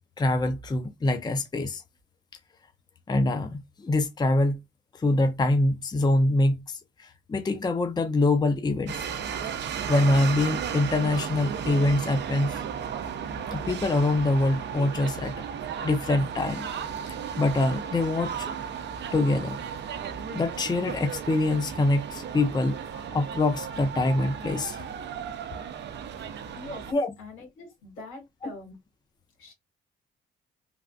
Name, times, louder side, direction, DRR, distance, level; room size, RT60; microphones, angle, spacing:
voice 1, 0.2-1.8 3.1-4.6 4.9-9.0 9.9-12.6 13.5-15.3 15.8-16.7 17.4-18.5 19.1-19.6 20.3-22.8 23.1-24.8 26.9-27.1 28.4-28.5, left 2 dB, 20° left, 0.5 m, -25 dB
sound 1, 8.9-26.9, right 7 dB, 65° right, 0.6 m, -35 dB
voice 2, 27.2-28.8 29.4-29.5, left 2 dB, 85° left, 2.1 m, -43 dB
3.4 x 2.4 x 2.4 m
cardioid pair, 90°, 20 cm